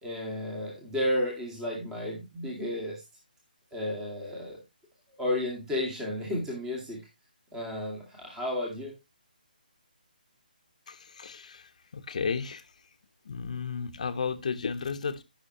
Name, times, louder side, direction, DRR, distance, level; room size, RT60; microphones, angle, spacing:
voice 1, 0.0-3.0 3.7-4.6 5.2-7.0 7.5-8.9, left 1 dB, 10° right, 2.3 m, -32 dB
voice 2, 10.9-12.7 13.2-15.2, left 5 dB, 50° left, 1.1 m, -33 dB
16.5 x 6.2 x 3.0 m
figure-of-eight pair, 145°, 5 cm